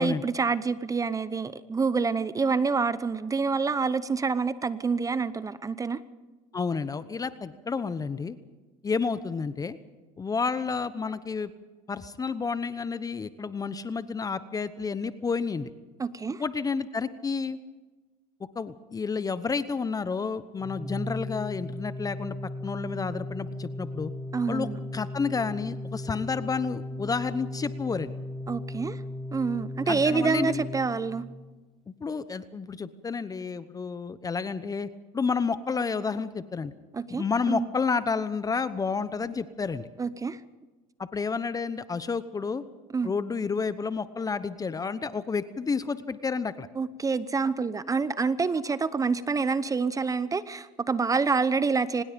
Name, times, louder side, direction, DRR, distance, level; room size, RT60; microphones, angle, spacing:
voice 1, 0.0-6.0 16.0-16.4 24.3-24.8 28.5-29.0 29.3-31.3 36.9-37.7 40.0-40.4 42.9-43.1 46.8-52.0, right 4 dB, 20° right, 15 dB, 0.8 m, -27 dB
voice 2, 6.5-8.4 8.8-9.8 10.2-11.5 11.9-15.7 16.4-17.6 18.5-22.4 22.6-24.1 24.5-28.1 29.9-30.6 32.0-36.7 37.1-39.9 41.1-42.6 43.0-46.7, left 5 dB, 20° left, 14 dB, 1.0 m, -30 dB
Organ, 20.6-31.5, left 1 dB, ahead, 2.5 m, -37 dB
25.0 x 20.0 x 5.2 m, 1.2 s
supercardioid pair, 95°, 17 cm